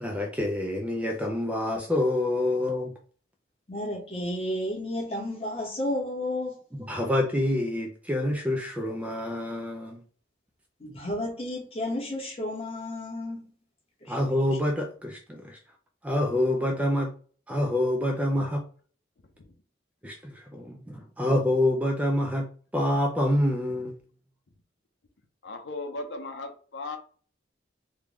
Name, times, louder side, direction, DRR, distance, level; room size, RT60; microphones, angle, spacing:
voice 1, 0.0-2.9 6.8-10.0 14.1-15.6 16.0-17.1 17.5-18.6 20.0-22.5 22.7-23.9, left 1 dB, 10° right, 0.4 m, -27 dB
voice 2, 3.7-6.6 10.8-13.4 14.0-14.2 14.5-14.6, left 1 dB, 30° left, 1.4 m, -32 dB
voice 3, 25.4-27.0, left 2 dB, 80° left, 0.7 m, -37 dB
3.5 x 2.3 x 3.1 m
head